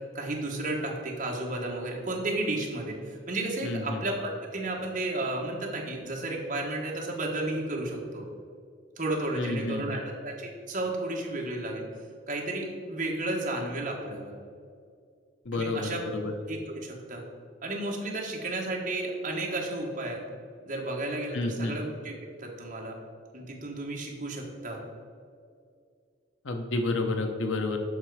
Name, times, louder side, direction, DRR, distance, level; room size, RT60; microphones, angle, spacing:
voice 1, 0.1-8.2 9.0-11.8 12.3-14.3 15.5-16.0 16.5-17.2 17.6-20.2 20.6-22.1 22.4-23.0 23.3-24.8, right 2 dB, 40° right, -1 dB, 1.4 m, -33 dB
voice 2, 3.6-4.0 9.4-10.0 15.5-16.3 21.3-21.8 26.4-27.8, left 2 dB, 80° left, 5 dB, 0.7 m, -30 dB
7.3 x 5.6 x 4.8 m, 2.3 s
head